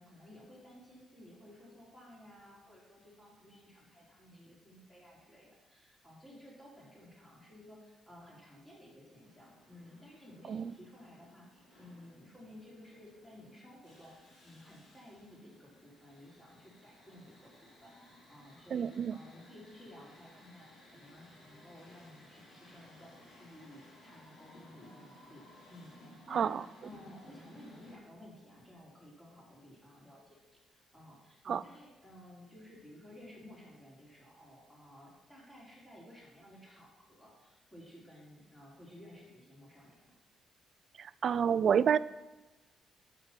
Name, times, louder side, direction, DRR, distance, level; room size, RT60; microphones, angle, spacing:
voice 1, 0.0-25.4 25.7-25.9 26.3-40.2, left 1 dB, 10° left, -6 dB, 3.9 m, -55 dB
sound 1, 9.2-27.9, left 1 dB, 70° left, 3.6 m, -59 dB
voice 2, 18.7-19.1 26.3-26.6 31.5-31.6 41.0-42.0, right 7 dB, 55° right, 17 dB, 0.3 m, -28 dB
9.2 x 6.1 x 6.0 m, 1.1 s
cardioid pair, 90°, 0 cm